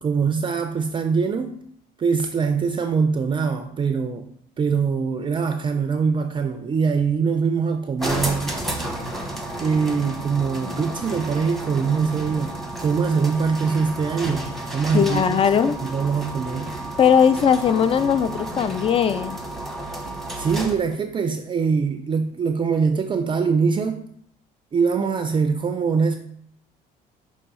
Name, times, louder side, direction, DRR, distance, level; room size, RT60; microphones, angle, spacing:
voice 1, 0.0-1.6 2.0-4.3 4.6-8.6 9.6-15.4 15.7-16.8 20.4-24.0 24.7-26.2, right 5 dB, 30° right, 7 dB, 0.4 m, -23 dB
sound 1, 8.0-20.9, right 1 dB, ahead, 0.9 m, -32 dB
voice 2, 14.9-15.8 17.0-19.4, left 7 dB, 35° left, 13 dB, 0.4 m, -19 dB
5.6 x 3.1 x 5.5 m, 0.65 s
cardioid pair, 110°, 17 cm